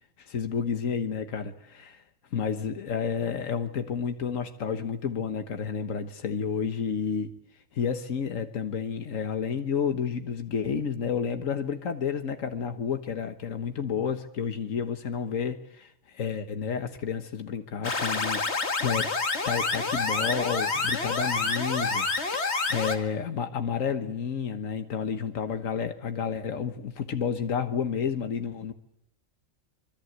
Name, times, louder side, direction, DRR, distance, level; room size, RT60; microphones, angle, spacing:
voice 1, 0.2-1.5 1.8-1.9 2.3-7.3 7.7-19.1 19.5-28.7, left 7 dB, 80° left, 7 dB, 1.7 m, -30 dB
sound 1, 17.8-23.0, left 3 dB, 55° left, 2.3 m, -28 dB
25.5 x 22.5 x 8.0 m, 0.76 s
omnidirectional pair, 1.3 m